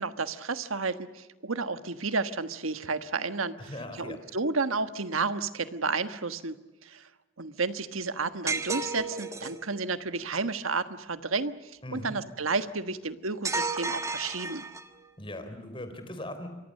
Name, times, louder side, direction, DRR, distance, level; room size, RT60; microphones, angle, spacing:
voice 1, 0.0-3.7 4.0-6.6 6.8-7.1 7.4-14.6, right 4 dB, 90° right, 11 dB, 1.4 m, -31 dB
voice 2, 3.6-4.2 11.8-12.1 15.2-16.5, left 1 dB, 25° left, 8 dB, 3.8 m, -39 dB
sound 1, 8.5-9.6 13.4-15.0, right 3 dB, 15° right, 1.4 m, -32 dB
28.5 x 24.0 x 6.6 m, 1.1 s
head